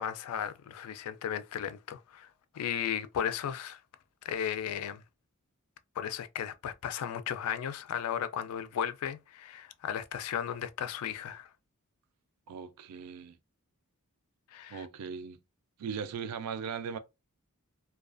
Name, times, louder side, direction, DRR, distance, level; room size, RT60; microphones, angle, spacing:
voice 1, 0.0-2.3 2.5-3.8 4.2-5.0 6.0-11.5 14.5-14.9, left 9 dB, 70° left, 0.3 m, -35 dB
voice 2, 12.5-13.4 14.7-15.4 15.8-17.0, right 6 dB, 90° right, 0.4 m, -38 dB
2.3 x 2.3 x 2.4 m
head